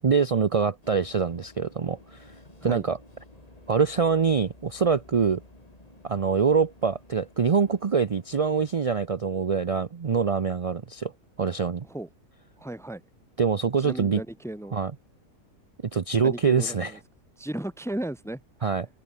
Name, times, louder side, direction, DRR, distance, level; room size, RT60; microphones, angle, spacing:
voice 1, 0.0-2.3 2.6-3.0 3.7-5.4 6.0-11.1 11.4-11.8 13.4-14.2 14.7-14.9 15.9-16.9 18.6-18.9, right 5 dB, 55° right, 0.3 m, -24 dB
sound 1, 0.8-8.8, left 2 dB, 25° left, 3.4 m, -53 dB
voice 2, 12.6-13.0 13.8-14.7 16.2-17.0 17.4-18.7, right 1 dB, 5° left, 0.6 m, -35 dB
omnidirectional pair, 1.6 m